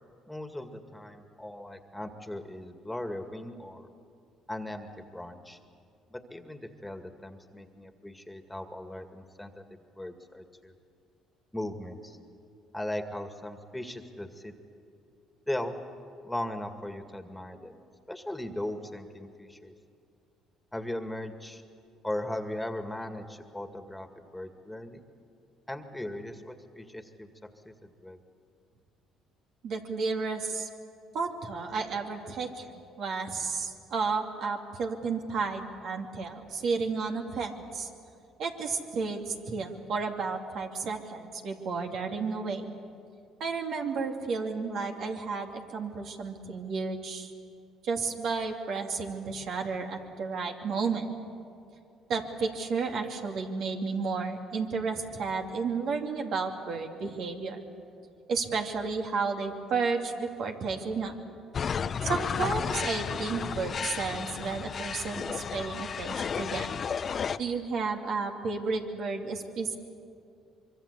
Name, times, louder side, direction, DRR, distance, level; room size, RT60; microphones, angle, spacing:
voice 1, 0.3-3.9 4.5-5.6 6.1-10.7 11.5-12.2 12.7-14.5 15.5-15.8 16.2-17.8 18.1-19.7 20.7-21.6 22.0-25.0 25.7-27.3 27.6-28.2, left 1 dB, 5° left, 7 dB, 2.1 m, -38 dB
voice 2, 29.6-30.7 31.1-32.7 33.0-37.9 38.4-42.7 43.4-47.3 47.8-51.1 52.1-57.6 58.3-61.1 62.0-66.7 67.4-69.7, right 4 dB, 65° right, 2 dB, 2.6 m, -32 dB
sound 1, 61.5-67.4, left 6 dB, 45° left, 0.8 m, -33 dB
25.0 x 23.0 x 8.4 m, 2.5 s
supercardioid pair, 75°, 0 cm